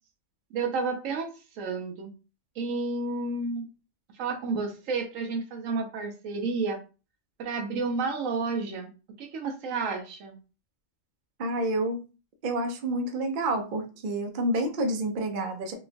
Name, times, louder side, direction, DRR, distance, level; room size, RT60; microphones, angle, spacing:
voice 1, 0.5-2.1 2.6-3.7 4.1-6.8 7.4-8.9 9.2-10.4, right 4 dB, 75° right, 4 dB, 1.0 m, -31 dB
voice 2, 11.4-12.0 12.4-15.7, right 1 dB, 55° right, 3 dB, 0.6 m, -28 dB
2.9 x 2.3 x 2.4 m, 0.32 s
omnidirectional pair, 1.4 m